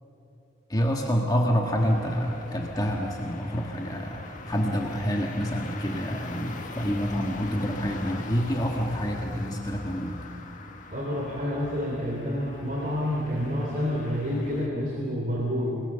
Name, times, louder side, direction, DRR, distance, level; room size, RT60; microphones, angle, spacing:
voice 1, 0.7-10.2, equal, 20° left, 0 dB, 1.7 m, -27 dB
sound 1, 1.8-14.7, left 2 dB, 40° left, 1.9 m, -42 dB
voice 2, 10.9-15.8, equal, 45° right, -1 dB, 3.3 m, -28 dB
29.5 x 20.0 x 6.9 m, 3.0 s
head